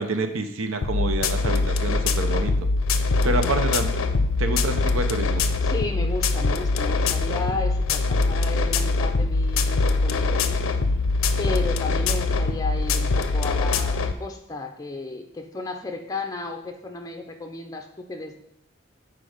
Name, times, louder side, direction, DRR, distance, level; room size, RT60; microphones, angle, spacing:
voice 1, 0.0-2.5 3.2-3.9 4.4-5.5, right 2 dB, 85° right, 8 dB, 0.7 m, -27 dB
sound 1, 0.8-14.1, left 3 dB, 85° left, 0.5 m, -23 dB
voice 2, 3.2-3.5 4.4-4.5 5.6-10.6 11.4-18.4, left 2 dB, 20° left, 3 dB, 0.7 m, -33 dB
6.2 x 4.5 x 4.9 m, 0.78 s
head